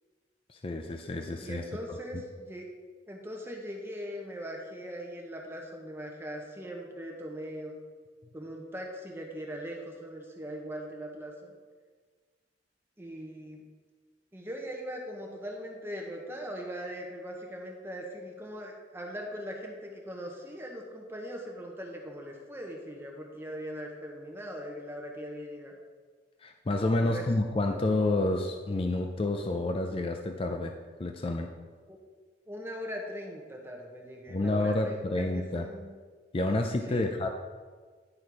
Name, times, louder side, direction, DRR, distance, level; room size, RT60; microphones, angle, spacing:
voice 1, 0.5-1.6 26.4-30.7 31.0-31.5 34.3-35.7 36.3-37.3, left 2 dB, 30° left, 4 dB, 0.4 m, -29 dB
voice 2, 1.4-2.7 3.1-7.7 8.3-11.5 13.0-13.6 14.3-25.7 27.0-27.2 31.9-32.0 32.5-36.0 36.9-37.1, equal, 15° right, 0 dB, 0.9 m, -40 dB
11.0 x 4.3 x 4.8 m, 1.5 s
head